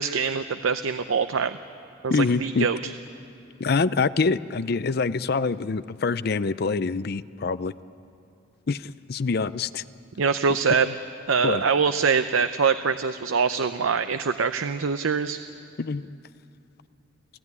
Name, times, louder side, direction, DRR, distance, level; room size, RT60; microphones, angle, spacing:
voice 1, 0.0-1.6 2.0-2.8 10.2-10.9 11.3-15.4, right 5 dB, 90° right, 10 dB, 0.6 m, -24 dB
voice 2, 2.1-2.7 3.6-7.7 8.7-9.8 11.4-11.6 15.8-16.1, left 4 dB, 50° left, 15 dB, 0.5 m, -25 dB
29.5 x 16.0 x 9.7 m, 2.6 s
head